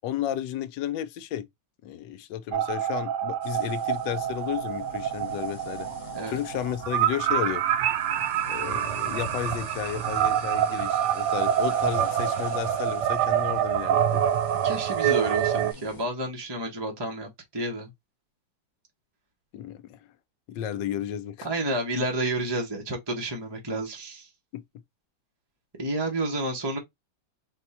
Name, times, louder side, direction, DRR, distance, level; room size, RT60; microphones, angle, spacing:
voice 1, 0.0-1.5 1.8-5.9 6.3-7.7 8.5-14.2 19.5-20.1 20.5-21.5 24.5-24.6, left 10 dB, 75° left, 1.2 m, -33 dB
sound 1, 2.5-15.7, right 10 dB, 70° right, 1.1 m, -26 dB
sound 2, 3.4-16.1, left 5 dB, 35° left, 0.7 m, -47 dB
voice 2, 14.6-17.9 21.4-24.3 25.8-26.8, right 1 dB, 30° right, 0.4 m, -30 dB
4.3 x 2.3 x 4.0 m
omnidirectional pair, 2.1 m